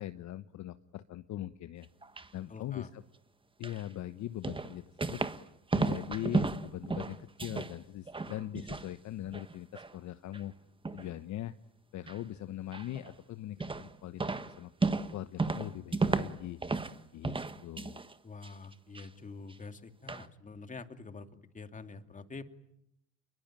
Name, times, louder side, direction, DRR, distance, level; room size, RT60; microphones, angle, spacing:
voice 1, 0.0-1.9 2.3-3.0 3.6-5.2 5.7-10.6 10.9-11.5 11.9-14.7 15.1-16.6 17.1-17.4 17.6-18.0, left 13 dB, 50° left, 11 dB, 1.2 m, -41 dB
sound 1, 1.8-2.3 3.6-3.8 4.4-5.4 5.7-7.8 8.1-8.9 9.2-9.9 10.3-10.4 10.8-11.1 12.1-12.2 12.7-13.1 13.6-13.9 14.2-17.0 17.2-18.1 18.4-19.1 19.5-19.6 20.1-20.3, right 3 dB, 15° right, 1.5 m, -33 dB
voice 2, 2.5-2.9 18.2-21.3 21.5-22.4, left 4 dB, 20° left, 8 dB, 2.7 m, -46 dB
28.5 x 23.0 x 9.1 m, 0.78 s
supercardioid pair, 90°, 37 cm